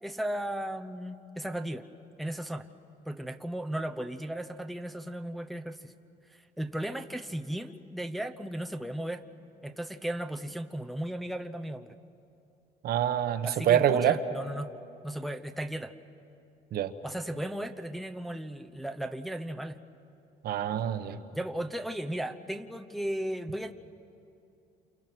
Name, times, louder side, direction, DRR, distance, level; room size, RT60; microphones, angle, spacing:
voice 1, 0.0-1.8 2.2-2.7 3.0-5.9 6.3-9.2 9.6-12.0 13.4-14.7 15.0-15.9 17.0-19.8 21.3-23.7, right 1 dB, ahead, 5 dB, 0.9 m, -35 dB
voice 2, 12.8-14.2 16.7-16.9 20.4-21.2, right 10 dB, 65° right, 9 dB, 1.2 m, -26 dB
28.5 x 28.0 x 6.2 m, 2.7 s
cardioid pair, 110°, 17 cm